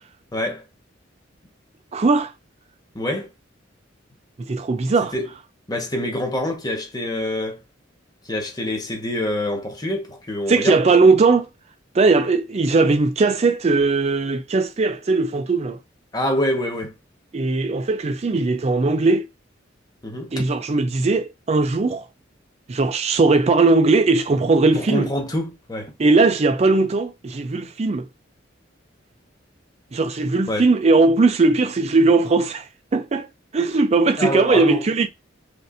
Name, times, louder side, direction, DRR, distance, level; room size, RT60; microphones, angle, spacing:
voice 1, 0.3-0.6 2.9-3.3 5.1-5.3 5.7-7.6 8.3-10.8 16.1-16.9 20.0-20.5 24.7-25.9 30.5-30.6 34.2-34.8, left 1 dB, 20° left, 1.2 m, -26 dB
voice 2, 1.9-2.3 4.4-5.1 10.5-11.5 11.9-15.8 17.3-19.3 20.3-22.1 22.7-25.1 26.0-28.0 29.9-33.3 33.5-35.1, right 3 dB, 35° right, 0.4 m, -19 dB
6.5 x 2.6 x 2.5 m
head